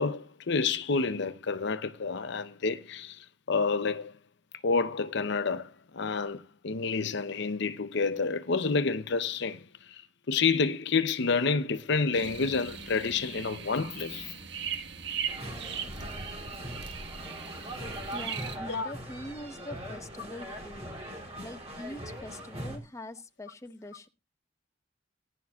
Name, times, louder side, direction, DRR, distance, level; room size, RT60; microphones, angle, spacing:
voice 1, 0.0-4.1 4.6-10.0 10.3-14.3 18.7-18.9, left 4 dB, 65° left, 0.7 m, -29 dB
sound 1, 12.1-18.6, right 7 dB, 65° right, 1.5 m, -39 dB
sound 2, 15.3-22.8, equal, 35° right, 4.0 m, -40 dB
voice 2, 18.1-20.9 21.4-24.1, left 1 dB, 15° left, 0.9 m, -43 dB
18.5 x 11.0 x 2.3 m
head